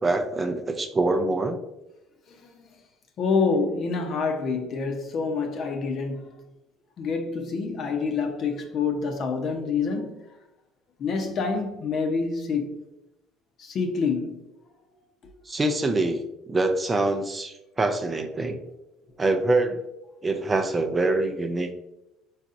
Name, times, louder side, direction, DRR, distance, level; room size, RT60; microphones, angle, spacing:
voice 1, 0.0-1.6 15.5-18.6 19.2-19.8 20.2-21.7, right 2 dB, 20° right, 0.4 m, -25 dB
voice 2, 2.3-2.6 3.2-6.4 7.0-10.2 11.0-12.8 13.6-14.4 15.2-15.3, left 4 dB, 45° left, 0.8 m, -27 dB
4.6 x 4.1 x 2.5 m
cardioid pair, 120°, 0 cm